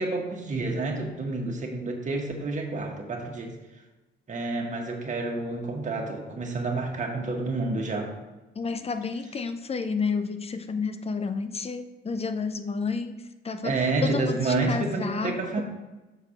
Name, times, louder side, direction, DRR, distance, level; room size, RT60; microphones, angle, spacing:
voice 1, 0.0-3.5 4.3-8.1 13.6-15.6, right 3 dB, 40° right, 1 dB, 1.6 m, -29 dB
voice 2, 8.6-15.6, left 5 dB, 30° left, 9 dB, 0.6 m, -31 dB
6.9 x 4.7 x 5.9 m, 1.1 s
cardioid pair, 90°, 20 cm